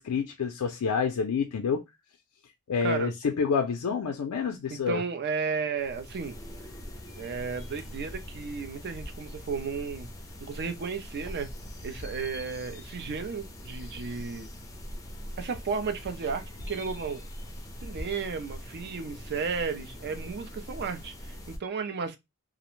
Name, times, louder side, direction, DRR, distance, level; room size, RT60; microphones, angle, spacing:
voice 1, 0.0-1.8 2.7-5.0, left 5 dB, 90° left, 0.4 m, -28 dB
voice 2, 2.8-3.1 4.7-6.4 7.2-10.1 10.4-11.5 11.8-14.5 15.4-17.2 17.8-22.2, right 5 dB, 50° right, 0.4 m, -33 dB
sound 1, 5.8-21.6, equal, 15° left, 0.4 m, -42 dB
2.4 x 2.1 x 3.0 m
head